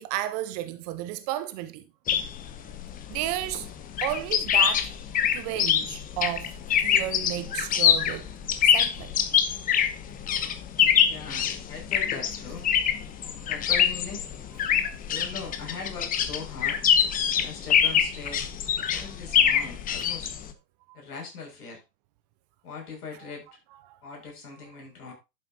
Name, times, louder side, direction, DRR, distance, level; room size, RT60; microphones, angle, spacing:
voice 1, 0.0-1.8 3.1-3.7 4.0-5.0 5.3-6.5 6.8-8.3 8.6-9.1 13.2-13.3 14.8-14.9 20.9-21.0 23.2-23.3 23.8-24.0, right 13 dB, 25° right, 0.6 m, -33 dB
sound 1, 2.1-20.5, left 8 dB, 15° left, 0.9 m, -25 dB
voice 2, 11.1-12.7 13.4-14.3 15.1-16.8 17.3-18.5 18.8-20.3 20.9-21.8 22.6-23.4 24.0-25.1, left 4 dB, 65° left, 6.8 m, -40 dB
11.0 x 8.4 x 2.8 m
figure-of-eight pair, 110°, 50 cm